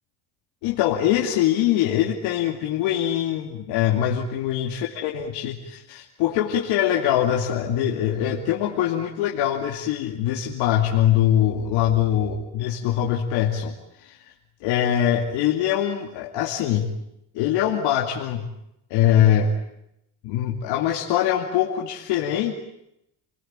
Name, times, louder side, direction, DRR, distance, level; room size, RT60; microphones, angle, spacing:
voice 1, 0.6-14.2 14.6-16.9 17.3-18.5 18.9-19.5 20.2-22.5, left 10 dB, 85° left, 0 dB, 2.5 m, -23 dB
29.0 x 20.0 x 8.9 m, 0.82 s
supercardioid pair, 80°, 40 cm